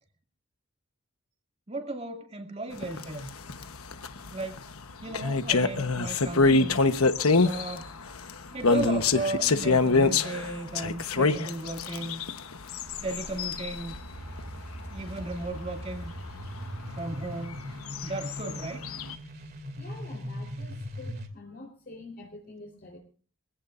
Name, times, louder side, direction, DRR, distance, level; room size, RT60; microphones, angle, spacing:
voice 1, 1.7-3.3 4.3-4.6 5.0-6.8 7.4-7.9 8.4-12.2 13.0-13.9 14.9-16.1 16.9-17.6 18.0-18.9, right 2 dB, 30° right, 2.5 m, -35 dB
sound 1, 2.7-13.9 14.3-14.5 14.9-15.1 15.4-15.5 15.9-16.0 16.3-16.4 17.5-19.2, left 3 dB, 90° left, 1.1 m, -25 dB
sound 2, 12.8-21.3, equal, 45° right, 2.6 m, -40 dB
voice 2, 19.8-23.0, left 2 dB, 45° left, 4.1 m, -46 dB
24.0 x 17.0 x 2.6 m
head